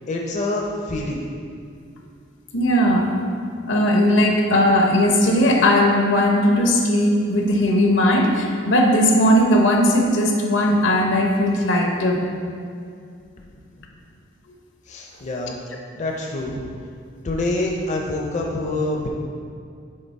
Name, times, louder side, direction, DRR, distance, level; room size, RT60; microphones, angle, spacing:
voice 1, 0.1-1.2 14.9-15.6 16.0-16.6 17.2-19.1, left 2 dB, 40° left, 0 dB, 0.5 m, -26 dB
voice 2, 2.5-3.2 3.7-12.2, equal, 80° left, 1 dB, 0.8 m, -18 dB
6.5 x 3.6 x 4.6 m, 2.3 s
head